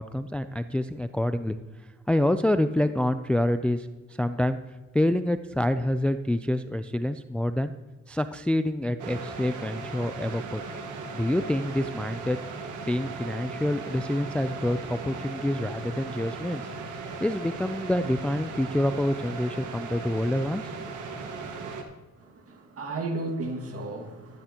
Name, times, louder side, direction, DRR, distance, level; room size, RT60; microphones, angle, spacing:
voice 1, 0.0-1.6 2.1-3.9 4.2-4.6 4.9-7.7 8.1-10.6 11.1-12.4 12.8-16.7 17.2-20.7, left 1 dB, 5° left, 11 dB, 0.3 m, -27 dB
sound 1, 9.0-21.8, right 4 dB, 85° right, 1.5 m, -37 dB
voice 2, 22.2-24.4, right 2 dB, 50° right, 2 dB, 2.0 m, -34 dB
12.5 x 12.0 x 2.9 m, 1.3 s
cardioid pair, 90°, 30 cm